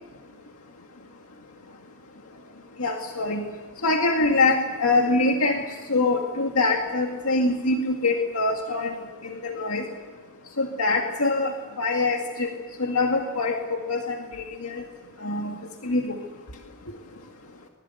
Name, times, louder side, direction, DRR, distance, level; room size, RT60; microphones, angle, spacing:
voice 1, 2.8-3.4 3.8-5.6 5.9-8.9 9.2-9.8 10.6-11.5 11.8-12.5 12.8-14.8 15.2-15.6 15.8-16.2, left 3 dB, 80° left, 2 dB, 2.1 m, -24 dB
25.0 x 21.0 x 7.9 m, 1.4 s
head